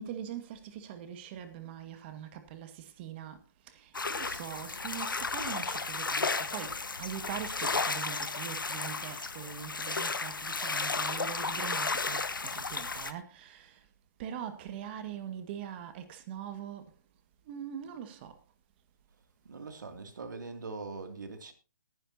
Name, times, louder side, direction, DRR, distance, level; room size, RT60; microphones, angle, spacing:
voice 1, 0.0-13.9 14.2-16.9 17.4-18.4, right 9 dB, 30° right, 1.9 m, -42 dB
sound 1, 3.9-13.1, left 4 dB, 85° left, 1.4 m, -33 dB
voice 2, 19.5-21.5, right 3 dB, 65° right, 2.7 m, -42 dB
19.5 x 10.5 x 2.9 m
figure-of-eight pair, 140°, 11 cm